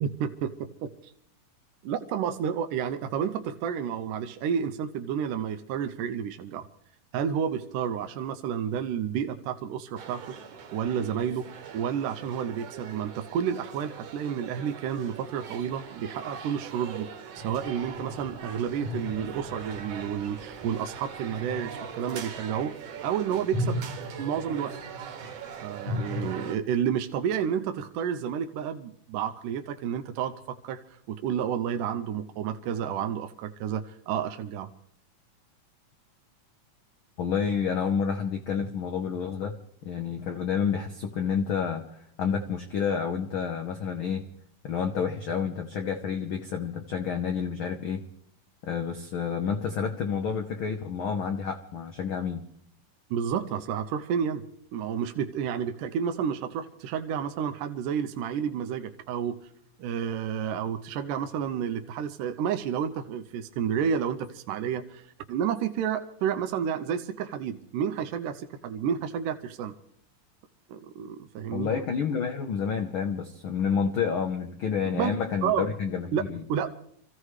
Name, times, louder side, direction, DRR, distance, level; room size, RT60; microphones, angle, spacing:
voice 1, 0.0-1.1 1.8-6.7 7.1-10.2 10.7-11.5 11.7-17.1 17.4-22.7 23.0-23.8 24.2-24.7 25.6-30.8 31.1-34.7 53.1-54.5 54.7-59.4 59.8-65.0 65.3-69.7 70.7-71.7 74.8-75.1 75.4-75.7 76.1-76.2 76.5-76.7, right 8 dB, 80° right, 7 dB, 2.3 m, -30 dB
sound 1, 10.0-26.6, right 7 dB, 60° right, 2.1 m, -42 dB
sound 2, 17.4-23.0 23.3-26.3, left 1 dB, 40° left, 0.9 m, -37 dB
voice 2, 37.2-39.6 39.8-44.3 44.6-48.0 48.6-52.4 71.5-76.4, left 6 dB, 90° left, 6 dB, 1.1 m, -29 dB
26.5 x 15.5 x 3.2 m, 0.68 s
omnidirectional pair, 3.7 m